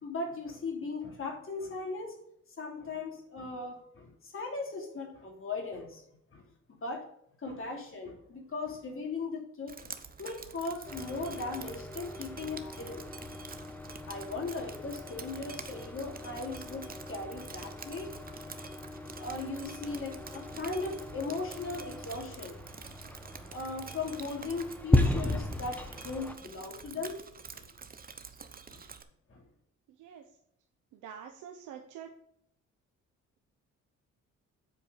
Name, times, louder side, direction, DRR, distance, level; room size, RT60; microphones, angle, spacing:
voice 1, 0.0-2.1 2.6-6.0 6.3-6.4 6.8-7.0 7.4-13.1 13.3-13.4 14.1-18.8 19.2-22.6 22.8-22.9 23.5-27.2 27.5-27.7 28.7-28.8 29.3-29.4, left 3 dB, 45° left, 1 dB, 2.7 m, -38 dB
Drip, 9.7-29.0, right 5 dB, 30° right, 0.8 m, -48 dB
sound 1, 10.8-26.3, left 1 dB, 5° left, 1.0 m, -36 dB
voice 2, 29.9-30.3 30.9-32.1, right 8 dB, 85° right, 4 dB, 0.9 m, -46 dB
8.1 x 4.7 x 5.1 m, 0.71 s
cardioid pair, 90°, 30 cm